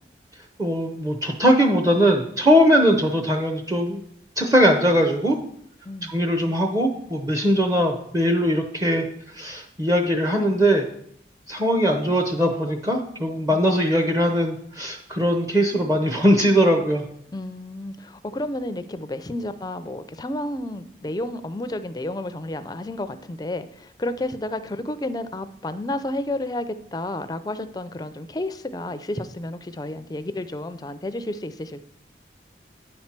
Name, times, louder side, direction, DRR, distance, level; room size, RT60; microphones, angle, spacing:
voice 1, 0.6-4.0 4.4-5.4 6.1-9.1 9.3-10.9 11.5-17.0, equal, 20° right, 3 dB, 0.6 m, -20 dB
voice 2, 17.3-31.8, left 1 dB, 20° left, 11 dB, 0.4 m, -31 dB
9.5 x 4.3 x 5.9 m, 0.69 s
head